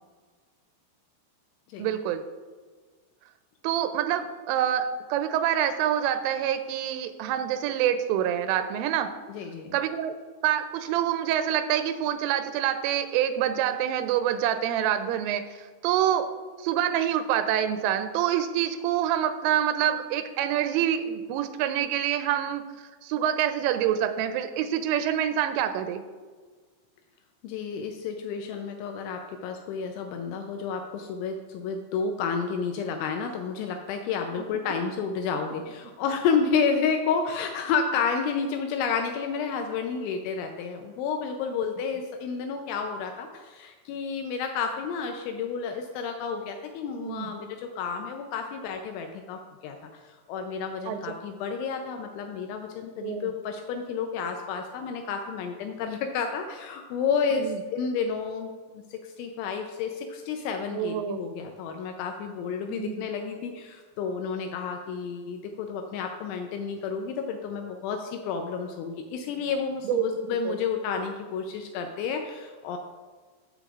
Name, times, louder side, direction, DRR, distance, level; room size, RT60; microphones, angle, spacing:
voice 1, 1.8-2.2 3.6-9.1 9.7-10.2 10.4-16.3 16.6-22.6 23.0-26.0 34.4-34.5 47.0-47.3 50.9-51.0 53.0-53.3 57.3-57.6 60.7-61.2 62.7-63.1 69.8-70.0 70.4-70.6, right 10 dB, 90° right, 9 dB, 3.1 m, -26 dB
voice 2, 9.3-9.7 27.4-49.8 50.3-72.8, left 6 dB, 80° left, 4 dB, 2.9 m, -30 dB
14.5 x 6.9 x 2.4 m, 1.4 s
omnidirectional pair, 5.6 m